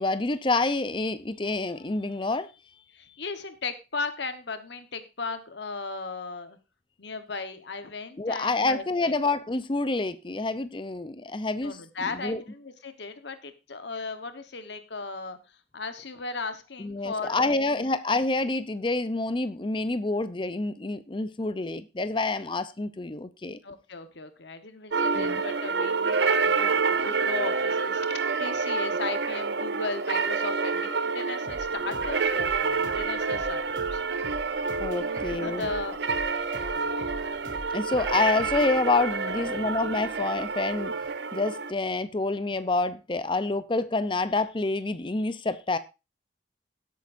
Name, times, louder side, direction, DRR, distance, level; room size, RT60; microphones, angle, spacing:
voice 1, 0.0-2.5 8.2-12.4 16.8-23.6 25.1-25.4 34.8-35.7 36.4-37.2 37.7-40.9 41.3-45.8, left 3 dB, 25° left, 0.5 m, -28 dB
voice 2, 2.9-6.6 7.0-9.2 11.6-17.9 23.6-34.0 34.9-36.0 39.3-39.8, left 4 dB, 65° left, 1.1 m, -37 dB
sound 1, 24.9-41.7, right 4 dB, 60° right, 0.7 m, -28 dB
sound 2, 31.4-41.1, equal, 80° right, 3.2 m, -45 dB
17.0 x 8.4 x 2.6 m
head